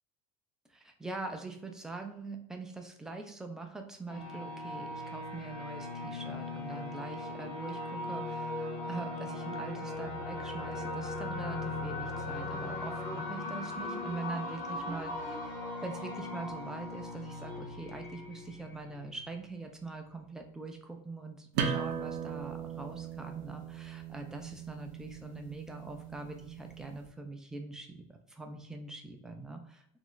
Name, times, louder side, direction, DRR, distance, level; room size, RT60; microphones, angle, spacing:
voice 1, 0.7-29.9, right 3 dB, 5° right, 4 dB, 0.3 m, -43 dB
sound 1, 4.1-19.4, left 2 dB, 65° left, 0.8 m, -39 dB
sound 2, 21.5-26.9, right 7 dB, 75° right, 0.5 m, -38 dB
2.4 x 2.0 x 3.7 m, 0.69 s
cardioid pair, 145°, 16 cm